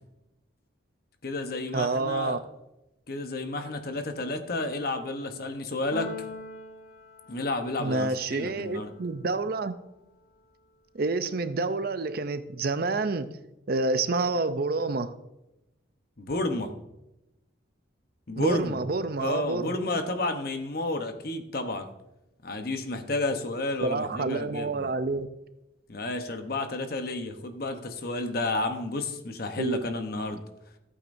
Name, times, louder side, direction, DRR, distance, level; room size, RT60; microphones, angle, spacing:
voice 1, 1.2-2.4 3.1-6.1 7.3-8.9 16.2-16.7 18.3-18.7 19.2-21.9 22.4-24.9 25.9-30.4, left 2 dB, 50° left, 7 dB, 0.9 m, -31 dB
voice 2, 1.7-2.4 7.8-9.7 10.9-13.3 13.7-15.1 18.4-19.7 23.8-25.3 29.6-29.8, right 3 dB, 50° right, 12 dB, 0.5 m, -28 dB
Keyboard (musical), 5.9-8.0, left 1 dB, 85° left, 1.7 m, -42 dB
13.5 x 8.6 x 2.6 m, 0.91 s
head